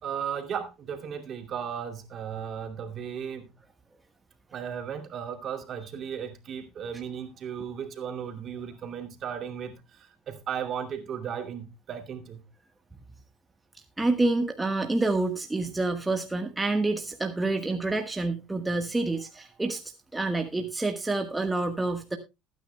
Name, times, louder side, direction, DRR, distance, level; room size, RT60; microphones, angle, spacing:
voice 1, 0.0-3.5 4.5-12.4, right 8 dB, 45° right, 2.6 m, -35 dB
voice 2, 14.0-19.8 20.1-22.2, right 2 dB, 15° right, 1.3 m, -28 dB
20.5 x 9.4 x 2.2 m
hypercardioid pair, 80°, 0 cm